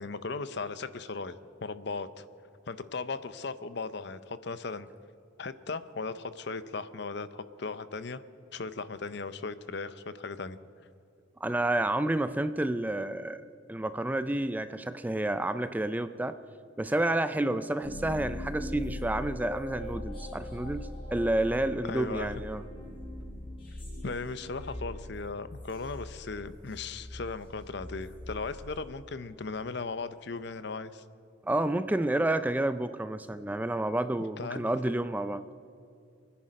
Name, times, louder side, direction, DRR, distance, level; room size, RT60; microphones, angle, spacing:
voice 1, 0.0-2.2 2.7-4.9 5.4-8.2 8.5-10.6 21.8-22.3 24.0-31.0 34.4-34.8, left 4 dB, 55° left, 14 dB, 0.6 m, -37 dB
voice 2, 11.4-13.4 13.7-16.4 16.8-22.6 31.4-35.4, right 1 dB, 10° right, 12 dB, 0.3 m, -30 dB
sound 1, 17.8-29.4, left 1 dB, 25° left, 4.5 m, -41 dB
27.0 x 10.0 x 5.2 m, 2.6 s
head